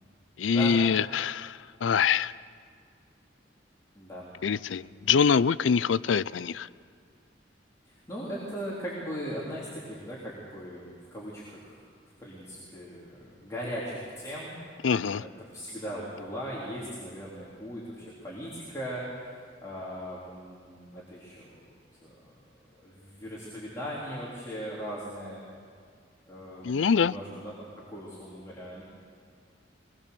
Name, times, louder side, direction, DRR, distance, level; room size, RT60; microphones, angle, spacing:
voice 1, 0.4-2.3 4.4-6.7 14.8-15.2 26.6-27.1, left 6 dB, 85° left, 18 dB, 0.4 m, -24 dB
voice 2, 4.0-4.3 5.0-5.3 7.9-11.8 12.2-14.6 15.2-21.6 22.0-22.3 22.8-25.4 26.3-28.8, equal, 15° left, -7 dB, 3.6 m, -39 dB
23.5 x 20.5 x 6.9 m, 2.1 s
head